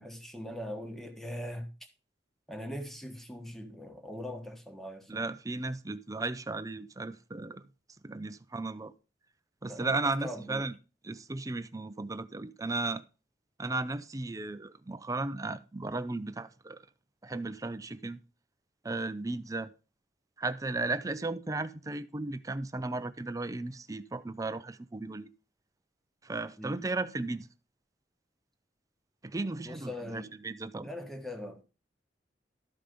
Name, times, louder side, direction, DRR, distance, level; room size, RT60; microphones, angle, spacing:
voice 1, 0.0-1.7 2.5-5.3 9.7-10.7 26.6-26.8 29.6-30.3 30.8-31.6, equal, ahead, 1.3 m, -41 dB
voice 2, 5.1-7.6 8.0-8.9 9.6-10.7 11.0-13.0 13.6-16.8 17.2-18.2 18.8-19.7 20.4-25.3 26.2-27.5 29.2-30.9, right 3 dB, 20° right, 0.5 m, -35 dB
13.0 x 5.2 x 5.2 m
head